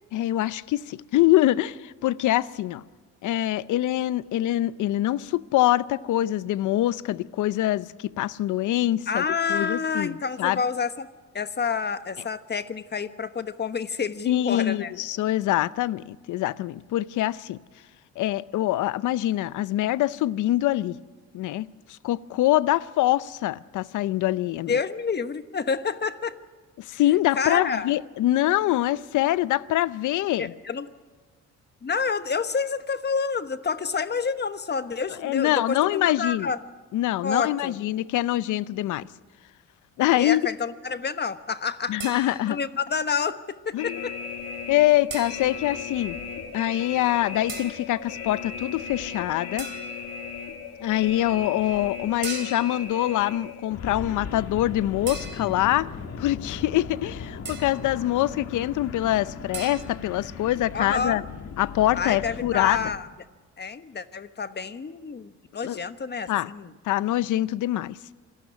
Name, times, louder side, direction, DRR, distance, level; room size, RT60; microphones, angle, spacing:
voice 1, 0.1-2.8 3.2-10.6 14.3-17.6 18.2-21.0 21.3-21.7 22.0-24.8 26.8-30.5 35.2-36.5 36.9-39.0 40.0-40.4 41.9-42.6 43.7-44.0 44.7-46.2 46.5-49.7 50.8-55.9 56.2-61.2 61.6-62.9 65.6-65.8 66.3-66.5 66.8-68.0, left 14 dB, 80° left, 0.7 m, -24 dB
voice 2, 9.1-11.1 11.3-14.9 24.7-26.4 27.4-27.9 30.4-30.9 31.8-36.6 37.2-37.7 40.1-42.0 42.3-44.1 60.7-61.3 61.9-63.1 63.6-66.7, left 5 dB, 35° left, 1.2 m, -28 dB
sound 1, 42.0-42.7 45.1-45.7 47.5-47.9 49.6-50.1 52.2-52.9 55.1-55.8 57.4-57.9 59.5-59.8, right 5 dB, 40° right, 3.1 m, -38 dB
sound 2, 43.8-63.0, left 5 dB, 55° left, 2.3 m, -37 dB
26.5 x 12.5 x 9.8 m
cardioid pair, 90°, 30 cm